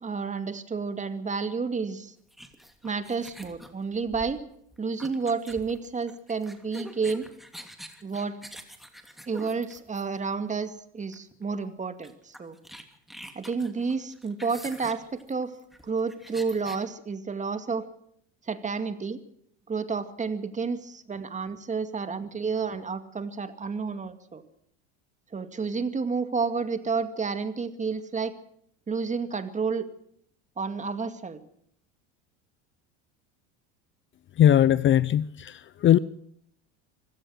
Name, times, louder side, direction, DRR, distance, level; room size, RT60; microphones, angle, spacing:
voice 1, 0.0-2.1 2.8-4.4 4.8-7.2 8.0-8.4 9.3-12.6 13.4-15.5 15.8-17.9 18.5-19.2 19.7-24.4 25.3-28.3 28.9-29.9 30.6-31.4, right 5 dB, 20° right, 10 dB, 2.2 m, -30 dB
sound 1, 2.3-10.3 11.1-11.3 11.6-11.7 12.0-16.8, equal, ahead, 2.8 m, -45 dB
voice 2, 34.3-36.0, left 11 dB, 35° left, 18 dB, 0.7 m, -20 dB
25.0 x 16.5 x 6.5 m, 0.70 s
supercardioid pair, 100°, 35 cm